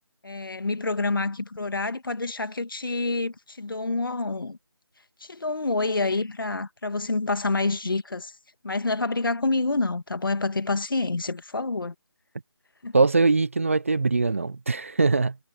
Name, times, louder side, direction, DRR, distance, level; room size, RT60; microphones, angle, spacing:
voice 1, 0.2-4.6 5.2-8.3 8.6-11.9 12.8-13.0, left 3 dB, 50° left, 2.0 m, -27 dB
voice 2, 12.9-15.4, right 3 dB, 30° right, 0.7 m, -22 dB
figure-of-eight pair, 165°, 14 cm